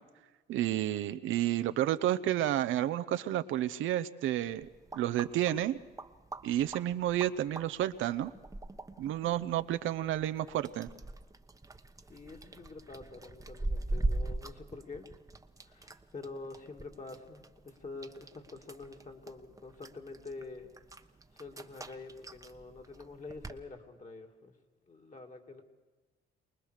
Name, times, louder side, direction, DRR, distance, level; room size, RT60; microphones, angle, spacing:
voice 1, 0.5-5.8 6.4-8.3 9.0-10.9, right 12 dB, 85° right, 11 dB, 0.9 m, -31 dB
sound 1, 4.4-23.6, right 2 dB, 15° right, 1.1 m, -42 dB
voice 2, 12.1-15.1 15.6-20.7 21.3-24.5 24.9-25.6, left 3 dB, 40° left, 3 dB, 2.8 m, -47 dB
24.5 x 20.0 x 6.6 m, 1.2 s
cardioid pair, 90°, 20 cm